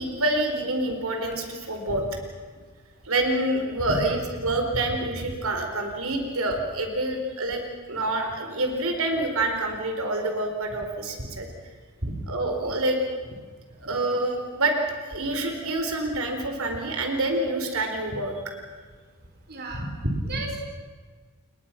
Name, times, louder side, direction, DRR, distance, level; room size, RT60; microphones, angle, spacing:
voice 1, 0.0-2.0 3.0-7.6 7.9-11.5 12.3-13.0 13.8-14.7 15.0-18.4, right 2 dB, 70° right, 4 dB, 4.5 m, -27 dB
voice 2, 19.5-20.6, right 1 dB, 50° right, 1 dB, 3.9 m, -30 dB
29.5 x 21.5 x 6.1 m, 1.5 s
head